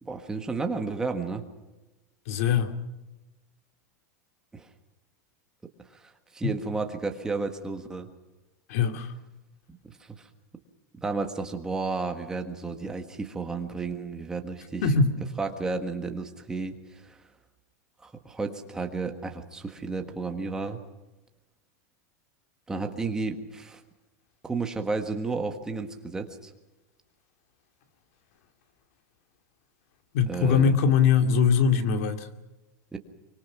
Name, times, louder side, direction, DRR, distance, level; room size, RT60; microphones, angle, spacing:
voice 1, 0.0-1.4 4.5-4.7 5.9-6.0 6.3-8.1 9.7-10.3 11.0-14.9 15.4-17.2 18.0-20.8 22.7-23.8 24.4-26.5 30.3-30.8 32.9-33.0, right 4 dB, 5° right, 5 dB, 1.5 m, -32 dB
voice 2, 2.3-2.7 8.7-9.1 14.8-15.2 30.1-32.3, left 6 dB, 55° left, 8 dB, 2.4 m, -22 dB
25.0 x 24.5 x 6.0 m, 1.1 s
supercardioid pair, 180°, 9 cm